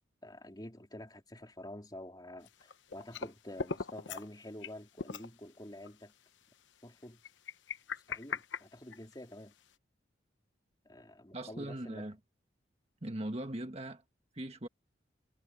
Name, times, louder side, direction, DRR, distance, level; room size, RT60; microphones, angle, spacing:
voice 1, 0.2-6.1 6.8-7.2 8.1-9.5 10.8-12.1, left 1 dB, 20° left, 3.3 m, -48 dB
sound 1, 2.5-3.3 3.6-4.3 4.6-4.7 5.0-5.3 5.8-5.9 7.2-9.3, left 5 dB, 85° left, 0.9 m, -39 dB
voice 2, 11.3-12.2 13.0-14.0 14.3-14.7, right 1 dB, 35° right, 1.6 m, -40 dB
head